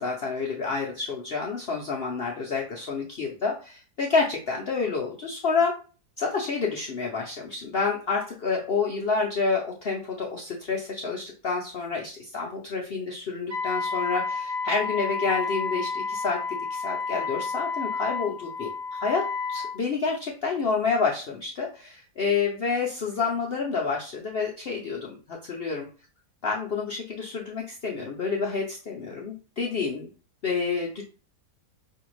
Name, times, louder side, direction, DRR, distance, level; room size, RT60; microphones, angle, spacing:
voice 1, 0.0-5.8 6.2-25.9 26.4-30.1 30.4-31.0, left 4 dB, 70° left, -1 dB, 0.5 m, -29 dB
Wind instrument woodwind instrument, 13.5-19.7, left 4 dB, 50° right, 0.8 m, -31 dB
5.5 x 2.5 x 3.0 m, 0.36 s
omnidirectional pair, 1.7 m